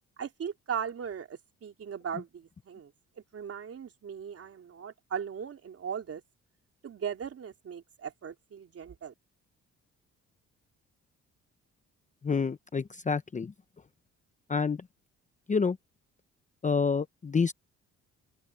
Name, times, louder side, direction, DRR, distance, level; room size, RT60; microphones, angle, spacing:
voice 1, 0.2-2.9 3.3-6.2 6.8-9.1, right 7 dB, 50° right, 3.6 m, -38 dB
voice 2, 12.2-13.5 14.5-14.9 15.5-15.8 16.6-17.5, left 5 dB, 25° left, 0.8 m, -28 dB
open air
cardioid pair, 90°, 30 cm